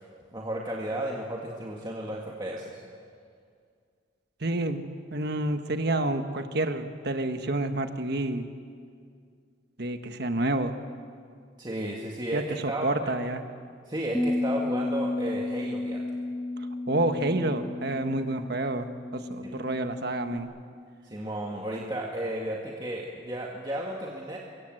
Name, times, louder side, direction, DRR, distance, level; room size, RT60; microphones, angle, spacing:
voice 1, 0.3-2.8 11.6-13.1 13.9-16.0 19.4-19.5 21.0-24.4, right 1 dB, 25° right, -2 dB, 1.9 m, -33 dB
voice 2, 4.4-4.8 5.1-8.5 9.8-10.7 12.3-13.5 16.9-20.5, right 2 dB, 55° right, 8 dB, 1.5 m, -29 dB
Bass guitar, 14.1-20.4, left 2 dB, 10° left, 1.4 m, -33 dB
26.0 x 22.5 x 7.8 m, 2.2 s
head